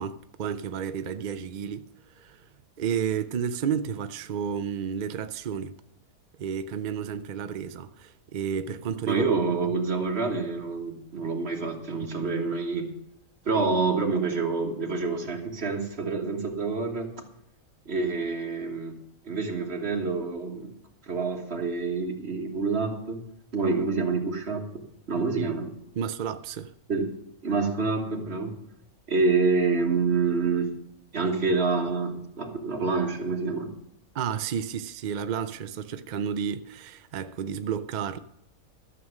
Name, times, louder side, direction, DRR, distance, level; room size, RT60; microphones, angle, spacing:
voice 1, 0.0-1.9 2.2-2.5 2.8-5.8 6.4-9.2 25.4-25.5 26.0-26.7 34.1-38.2, right 8 dB, 70° right, 0.4 m, -31 dB
voice 2, 9.1-12.9 13.4-17.1 17.9-18.9 19.2-20.7 21.1-23.2 23.5-24.7 25.1-25.7 26.9-27.1 27.4-28.5 29.1-30.7 31.1-33.7, right 4 dB, 50° right, 1.8 m, -27 dB
12.5 x 6.9 x 6.4 m
omnidirectional pair, 1.5 m